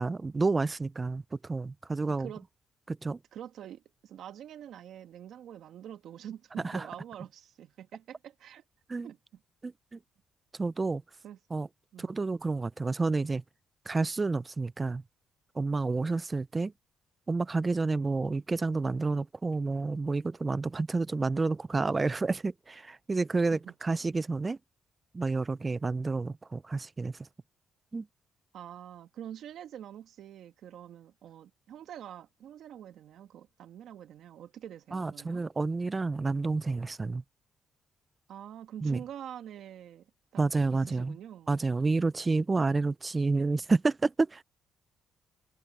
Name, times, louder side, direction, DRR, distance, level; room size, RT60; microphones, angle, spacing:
voice 1, 0.0-2.3 2.9-3.2 6.6-6.9 8.9-9.1 9.6-10.0 10.6-11.0 11.5-11.7 12.0-13.4 13.9-15.0 15.6-16.7 17.3-24.6 25.1-27.3 27.9-28.1 34.9-37.2 38.8-39.0 40.4-41.2 41.5-44.4, right 3 dB, 25° right, 0.4 m, -29 dB
voice 2, 3.3-8.6 9.0-9.4 11.2-11.6 11.9-12.1 23.5-23.7 28.5-35.4 38.3-40.5 40.7-41.5, right 10 dB, 75° right, 2.3 m, -46 dB
cardioid pair, 90°, 0 cm